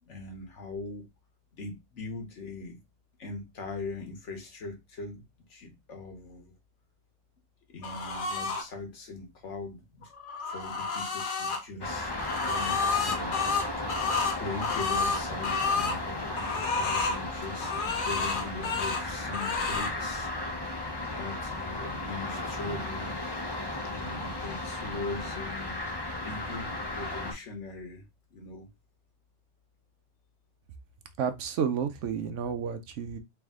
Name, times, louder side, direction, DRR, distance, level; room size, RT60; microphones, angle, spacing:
voice 1, 0.0-1.0 1.5-2.8 3.2-5.2 5.5-6.5 7.7-10.1 10.4-12.1 12.5-13.8 14.3-17.7 18.1-20.3 20.6-23.1 23.8-25.8 26.2-28.7, left 3 dB, 80° left, 1.5 m, -41 dB
sound 1, 7.8-8.6 10.0-11.6 12.1-16.0 16.3-17.2 17.6-19.0 19.3-19.9, left 4 dB, 50° left, 0.9 m, -30 dB
sound 2, 11.8-27.3, left 2 dB, 25° left, 0.8 m, -35 dB
voice 2, 31.2-33.2, right 7 dB, 90° right, 1.0 m, -31 dB
3.4 x 3.4 x 3.6 m
omnidirectional pair, 1.2 m